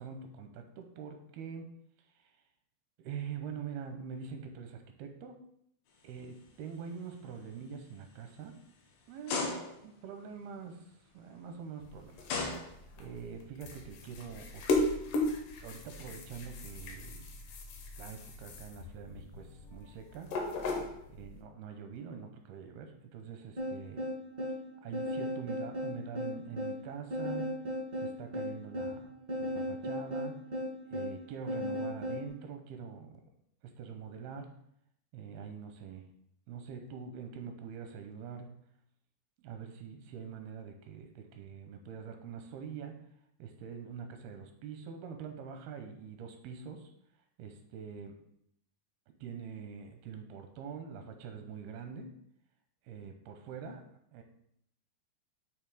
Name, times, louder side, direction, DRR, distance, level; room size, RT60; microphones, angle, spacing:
voice 1, 0.0-1.7 2.2-2.4 3.0-5.4 6.0-8.6 9.1-12.2 13.0-14.6 15.6-17.4 18.0-20.3 21.1-24.0 24.8-27.5 28.0-29.1 29.4-30.4 30.9-33.2 33.6-34.5 35.1-36.1 36.5-38.5 39.4-43.0 43.4-46.9 47.4-48.2 49.2-52.1 52.8-53.8 54.1-54.2, right 6 dB, 85° right, 5 dB, 2.5 m, -44 dB
sound 1, 6.1-6.4 6.9-7.1 7.8-7.9 9.3-10.0 11.5-11.6 12.3-13.2, left 3 dB, 90° left, 3.4 m, -36 dB
sound 2, 11.8-21.4, left 2 dB, 70° left, 2.2 m, -37 dB
sound 3, 23.6-32.3, left 1 dB, 45° right, 0.5 m, -36 dB
8.9 x 3.0 x 4.8 m, 0.72 s
omnidirectional pair, 4.6 m